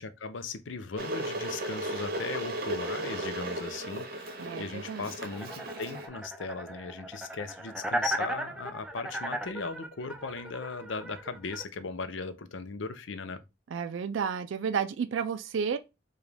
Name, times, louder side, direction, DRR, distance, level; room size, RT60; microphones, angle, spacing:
voice 1, 0.0-13.4, left 4 dB, 80° left, 0.6 m, -38 dB
Water / Boiling, 1.0-6.1, right 1 dB, 50° right, 0.7 m, -35 dB
voice 2, 4.4-5.1 13.7-15.8, right 6 dB, 80° right, 0.3 m, -31 dB
sound 1, 5.3-11.6, right 1 dB, 5° right, 0.4 m, -36 dB
4.9 x 2.4 x 3.3 m
head